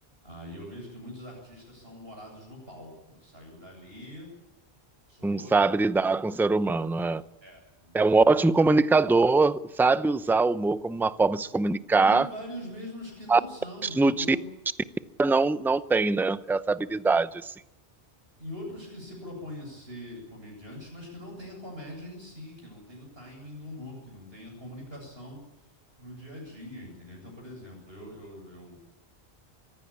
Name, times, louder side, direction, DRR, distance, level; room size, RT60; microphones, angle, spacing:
voice 1, 0.2-4.3 5.1-5.7 7.4-8.1 12.0-14.5 16.8-17.1 18.4-25.4 26.0-28.8, left 1 dB, 65° right, 8.2 m, -43 dB
voice 2, 5.2-7.2 7.9-12.3 13.3-13.4 14.0-14.4 15.2-17.5, right 3 dB, 5° right, 0.5 m, -23 dB
25.0 x 16.0 x 8.8 m
omnidirectional pair, 1.1 m